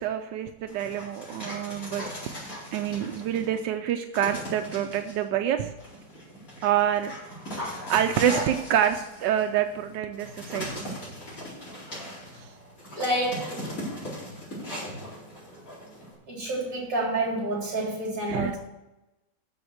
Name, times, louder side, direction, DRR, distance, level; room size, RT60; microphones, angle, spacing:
voice 1, 0.0-2.1 2.5-5.7 6.6-7.1 7.9-10.8 12.4-12.5 18.3-18.6, right 10 dB, 90° right, 7 dB, 1.3 m, -27 dB
Dog, 0.7-3.6 4.1-5.2 5.8-16.1, equal, 50° left, 4.8 m, -38 dB
voice 2, 13.0-13.6 16.3-18.6, right 1 dB, 50° right, -3 dB, 4.2 m, -28 dB
7.8 x 7.2 x 7.8 m, 0.99 s
omnidirectional pair, 1.9 m